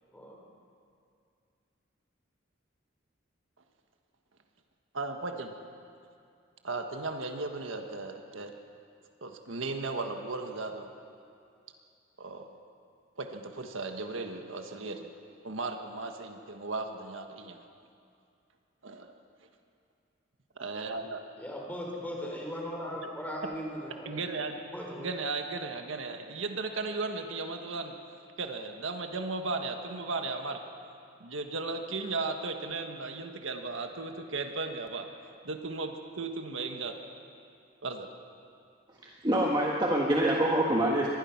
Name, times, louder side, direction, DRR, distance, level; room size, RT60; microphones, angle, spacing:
voice 1, 4.9-5.5 6.6-8.5 9.2-10.9 12.2-12.6 13.2-15.1 15.4-17.6 18.8-19.1 20.6-21.2 24.0-24.6 25.0-27.9 28.4-30.6 31.2-35.0 35.4-36.9 37.8-38.1, right 3 dB, 80° right, 5 dB, 1.5 m, -36 dB
voice 2, 21.4-24.4 24.7-25.1, equal, 10° left, -1 dB, 4.0 m, -38 dB
voice 3, 38.9-41.1, right 1 dB, 20° right, -3 dB, 1.6 m, -26 dB
24.0 x 20.0 x 6.0 m, 2.5 s
head